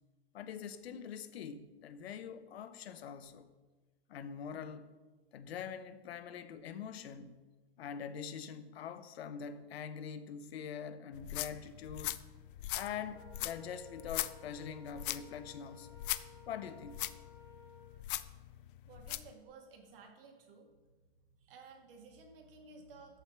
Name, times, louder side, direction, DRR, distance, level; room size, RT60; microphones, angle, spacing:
voice 1, 0.3-3.5 4.1-4.9 5.3-7.4 7.8-12.2 12.7-15.9 16.5-17.0, left 7 dB, 85° left, 0.8 m, -44 dB
sound 1, 11.1-19.3, left 14 dB, 55° left, 0.5 m, -41 dB
Wind instrument woodwind instrument, 13.1-18.0, left 2 dB, 5° left, 3.2 m, -58 dB
voice 2, 18.9-20.7 21.0-23.2, right 4 dB, 65° right, 2.1 m, -56 dB
13.5 x 4.7 x 4.7 m
supercardioid pair, 145°, 31 cm